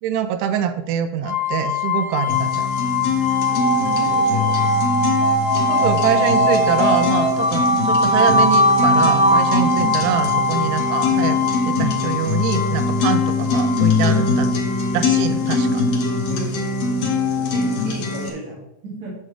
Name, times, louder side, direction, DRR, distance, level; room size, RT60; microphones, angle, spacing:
voice 1, 0.0-2.7 5.7-11.4 11.7-14.5 14.9-15.8 17.7-17.8, right 8 dB, 85° right, 10 dB, 2.6 m, -24 dB
sound 1, 1.2-16.2, left 1 dB, 45° left, 1.7 m, -21 dB
sound 2, 2.3-18.3, left 4 dB, 60° left, 1.8 m, -22 dB
voice 2, 3.5-5.0 16.3-19.1, right 1 dB, 50° right, -7 dB, 3.2 m, -35 dB
10.0 x 7.4 x 3.4 m, 0.88 s
omnidirectional pair, 4.7 m